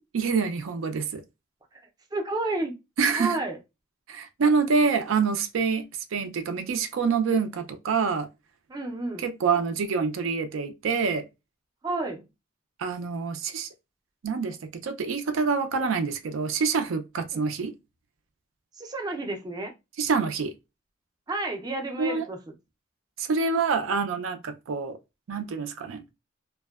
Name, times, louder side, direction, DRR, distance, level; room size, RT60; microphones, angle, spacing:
voice 1, 0.1-1.2 3.0-3.4 4.1-8.3 9.2-11.3 12.8-13.7 14.2-17.7 20.0-20.5 22.0-22.3 23.2-25.0 25.3-26.0, right 5 dB, 90° right, 0.4 m, -26 dB
voice 2, 2.1-2.8 3.2-3.6 8.7-9.2 11.8-12.3 17.3-17.4 18.7-19.7 21.3-22.4, right 2 dB, 20° right, 0.4 m, -31 dB
2.5 x 2.1 x 2.3 m
head